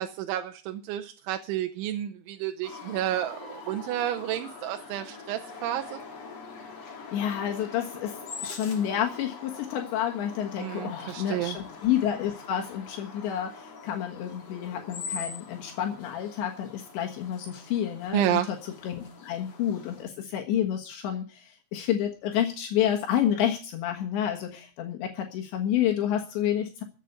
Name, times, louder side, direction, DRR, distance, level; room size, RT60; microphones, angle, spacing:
voice 1, 0.0-6.0 10.6-11.6 18.1-18.5, right 12 dB, 85° right, 5 dB, 3.3 m, -30 dB
sound 1, 2.6-20.0, left 4 dB, 40° left, 3.0 m, -43 dB
voice 2, 7.1-18.6 18.8-26.8, left 10 dB, 75° left, 3 dB, 3.7 m, -29 dB
15.0 x 8.5 x 7.9 m, 0.36 s
omnidirectional pair, 5.3 m